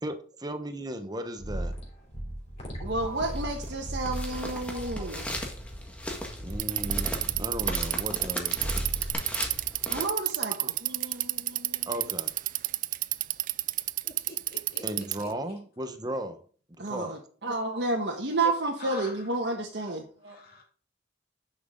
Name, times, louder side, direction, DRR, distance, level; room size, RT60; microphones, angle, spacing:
voice 1, 0.0-1.7 4.5-5.3 6.4-8.7 11.9-12.3 14.8-16.4 16.8-17.2 19.9-20.0, right 1 dB, 25° right, 1.1 m, -36 dB
sound 1, 1.4-8.2 8.6-9.1, right 1 dB, 40° left, 3.4 m, -37 dB
voice 2, 2.8-5.2 9.9-11.8 16.8-20.4, right 2 dB, 75° right, 1.5 m, -31 dB
sound 2, 2.9-10.0, left 1 dB, 10° left, 1.7 m, -38 dB
Bicycle, 6.5-15.3, right 17 dB, 50° right, 0.3 m, -29 dB
voice 3, 14.0-15.3 18.8-19.2 19.8-19.9 20.3-20.6, left 3 dB, 55° left, 2.9 m, -46 dB
10.5 x 6.2 x 3.8 m
head